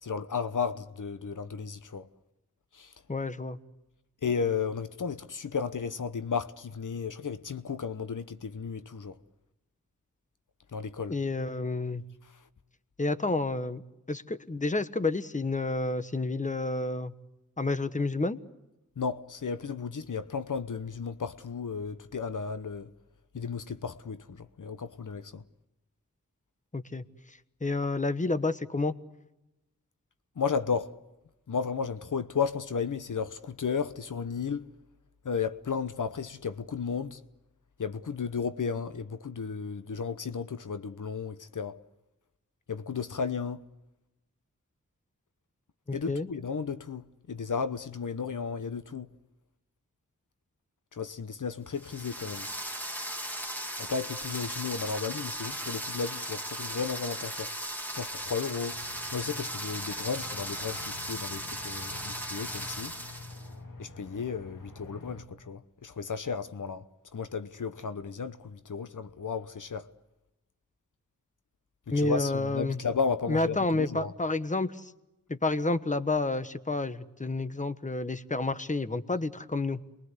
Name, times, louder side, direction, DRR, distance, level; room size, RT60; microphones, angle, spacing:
voice 1, 0.0-2.1 2.7-2.9 4.2-9.2 10.7-11.2 19.0-22.9 23.3-25.4 30.4-31.0 31.5-34.7 35.2-37.2 37.8-41.8 42.7-43.6 45.9-49.1 50.9-52.5 53.8-57.5 58.0-58.8 59.1-62.9 63.8-66.9 67.1-69.9 71.9-74.1, left 5 dB, 70° left, 1.0 m, -34 dB
voice 2, 3.1-3.6 11.1-12.0 13.0-13.8 14.1-17.1 17.6-18.4 26.7-28.9 45.9-46.3 71.9-72.8 73.3-74.9 75.3-79.8, left 2 dB, 25° left, 1.3 m, -30 dB
sound 1, 51.7-63.5, equal, 5° left, 2.8 m, -37 dB
Aircraft, 58.7-65.2, left 3 dB, 85° left, 2.4 m, -48 dB
28.5 x 22.0 x 8.1 m
wide cardioid pair, 60°, 33 cm